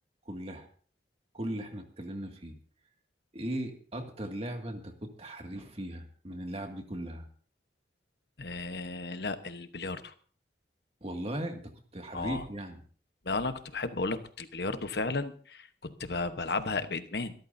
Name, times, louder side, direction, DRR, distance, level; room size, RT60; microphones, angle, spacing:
voice 1, 0.3-0.7 1.3-2.6 3.3-7.3 11.0-12.8, right 1 dB, 35° right, 4 dB, 2.1 m, -38 dB
voice 2, 8.4-10.1 12.1-12.4 13.2-17.3, left 3 dB, 65° left, 10 dB, 1.1 m, -34 dB
25.0 x 13.0 x 2.7 m, 0.44 s
head